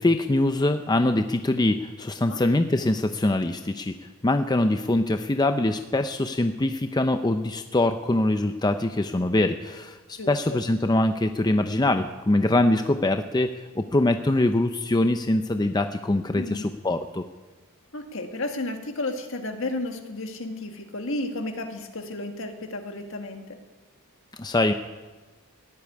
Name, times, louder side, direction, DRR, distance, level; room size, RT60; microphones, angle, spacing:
voice 1, 0.0-3.9 4.2-17.3 24.4-24.7, left 2 dB, 20° left, 8 dB, 0.5 m, -23 dB
voice 2, 10.2-10.6 16.3-16.6 17.9-23.6, left 2 dB, 60° left, 5 dB, 1.8 m, -33 dB
15.5 x 8.6 x 9.8 m, 1.2 s
head